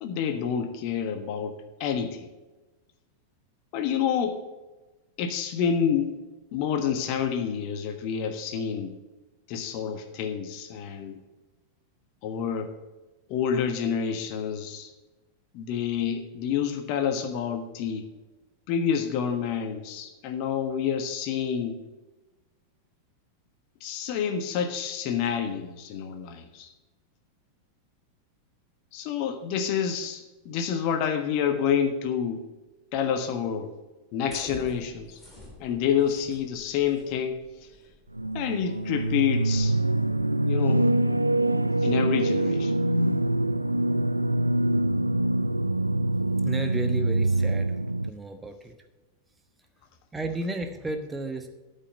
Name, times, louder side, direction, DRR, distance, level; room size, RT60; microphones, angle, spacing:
voice 1, 0.0-2.3 3.7-4.4 5.2-6.2 6.5-8.9 9.5-11.2 12.2-12.7 13.3-14.9 15.5-18.1 18.7-21.8 23.8-26.7 28.9-32.4 32.9-33.7 34.1-35.2 35.6-37.5 38.3-39.8 40.4-40.8 41.8-42.7, left 7 dB, 45° left, 8 dB, 1.3 m, -28 dB
sound 1, 34.3-40.3, left 1 dB, 10° left, 3.4 m, -49 dB
sound 2, 38.1-48.1, right 1 dB, 85° right, 0.3 m, -24 dB
voice 2, 46.4-47.7 48.0-48.7 50.1-51.5, right 2 dB, 10° right, 6 dB, 1.2 m, -33 dB
13.0 x 5.6 x 6.6 m, 1.1 s
figure-of-eight pair, 90°, 0 cm